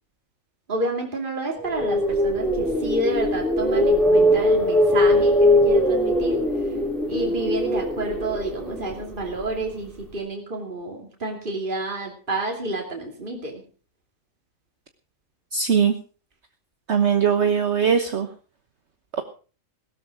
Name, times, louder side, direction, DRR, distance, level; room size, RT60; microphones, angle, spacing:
voice 1, 0.7-6.4 7.1-13.6, right 2 dB, 35° right, 1 dB, 3.1 m, -29 dB
sound 1, 1.6-9.7, left 1 dB, ahead, 3.6 m, -21 dB
voice 2, 15.5-15.9 16.9-18.3, right 7 dB, 55° right, 7 dB, 1.4 m, -20 dB
17.5 x 13.0 x 4.8 m, 0.38 s
omnidirectional pair, 1.5 m